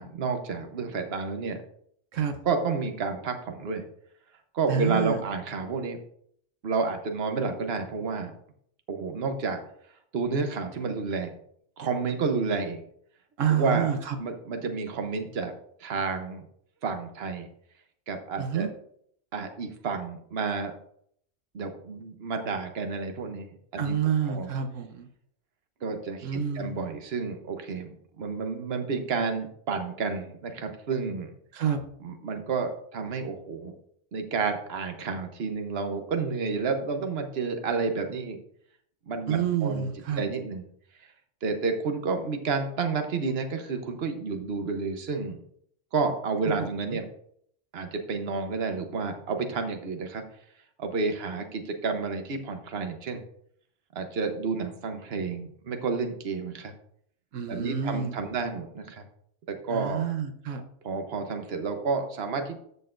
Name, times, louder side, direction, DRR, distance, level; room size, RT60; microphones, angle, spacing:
voice 1, 0.0-1.6 2.4-3.8 4.5-6.0 6.6-8.3 8.9-9.6 10.1-11.3 11.8-12.8 13.5-13.9 14.2-15.5 15.8-16.5 16.8-17.5 18.1-18.7 19.3-20.7 21.5-24.0 24.3-24.5 25.8-31.3 32.0-33.7 34.1-38.4 39.1-39.9 40.2-40.6 41.4-45.4 45.9-47.0 47.7-50.2 50.8-53.2 53.9-56.7 57.5-59.0 59.5-60.0 60.8-62.6, right 4 dB, 55° right, 6 dB, 1.2 m, -30 dB
voice 2, 4.7-5.2 13.4-14.2 18.4-18.7 23.8-25.1 26.2-26.8 31.5-31.8 39.3-40.2 46.4-47.0 57.3-58.2 59.7-60.6, right 8 dB, 80° right, 6 dB, 1.2 m, -28 dB
13.5 x 6.6 x 2.6 m, 0.66 s
omnidirectional pair, 1.3 m